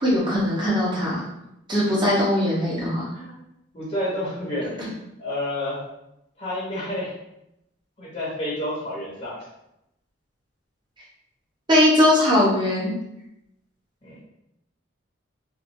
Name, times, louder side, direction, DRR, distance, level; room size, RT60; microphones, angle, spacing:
voice 1, 0.0-1.2 1.7-3.1 4.8-4.9 11.7-12.9, left 1 dB, 25° right, -5 dB, 0.8 m, -20 dB
voice 2, 3.7-4.9 5.2-5.8 6.4-7.2 8.0-9.4 14.0-14.2, left 1 dB, 30° left, -7 dB, 0.8 m, -29 dB
2.8 x 2.4 x 2.6 m, 0.85 s
head